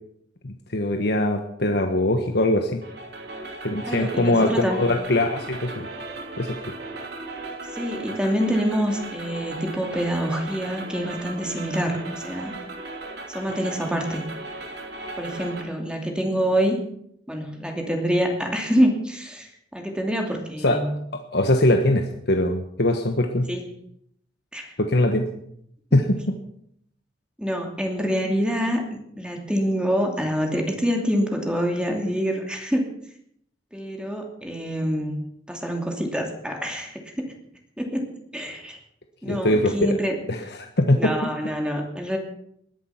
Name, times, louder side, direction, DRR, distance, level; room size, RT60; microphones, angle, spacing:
voice 1, 0.4-2.8 3.6-5.9 6.4-6.7 20.6-20.8 21.1-23.5 24.8-25.3 25.9-26.4 39.2-40.0 40.3-41.1, left 1 dB, 65° left, 4 dB, 1.4 m, -22 dB
sound 1, 2.8-15.6, right 2 dB, 65° right, 3.0 m, -36 dB
voice 2, 3.9-4.8 7.7-12.5 13.3-14.2 15.2-16.8 17.3-20.9 23.5-23.6 24.5-24.7 27.4-32.8 33.7-37.3 37.8-38.0 38.3-38.8 39.2-40.2 41.0-42.2, equal, 5° right, 2 dB, 2.7 m, -26 dB
20.5 x 11.0 x 5.9 m, 0.70 s
head